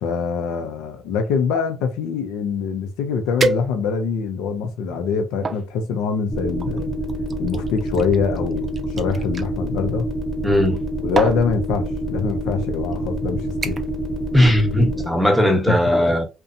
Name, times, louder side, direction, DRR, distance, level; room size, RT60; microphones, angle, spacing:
voice 1, 0.0-6.9 7.4-8.7 9.0-10.1 11.0-13.8 15.4-15.8, left 5 dB, 85° left, 0.5 m, -24 dB
sound 1, 2.7-2.8 3.4-4.2 4.8-5.6 6.6-9.5 10.6-10.8 11.2-11.5 12.3-12.5 12.9-13.2 13.6-14.0 14.4-14.7 15.1-15.2, right 3 dB, 40° right, 0.5 m, -28 dB
sound 2, 6.3-15.0, right 1 dB, 25° left, 1.0 m, -26 dB
voice 2, 10.4-10.8 14.3-16.3, equal, ahead, 1.0 m, -17 dB
2.6 x 2.2 x 2.5 m
supercardioid pair, 80°, 0 cm